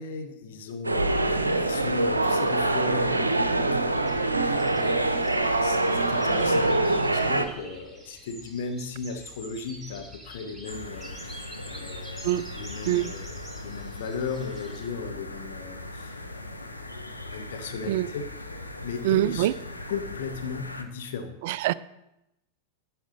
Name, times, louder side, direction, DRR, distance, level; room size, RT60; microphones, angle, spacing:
voice 1, 0.0-16.9 17.2-18.3 18.8-19.5 19.9-21.4, left 5 dB, 55° left, 1.1 m, -37 dB
sound 1, 0.8-7.4, right 2 dB, 80° right, 0.7 m, -24 dB
sound 2, 3.9-14.9, right 1 dB, ahead, 1.9 m, -47 dB
sound 3, 10.6-20.8, left 2 dB, 85° left, 0.8 m, -40 dB
voice 2, 19.0-19.5 21.4-21.7, right 14 dB, 50° right, 0.4 m, -24 dB
11.0 x 7.8 x 4.1 m
figure-of-eight pair, 90°, 0 cm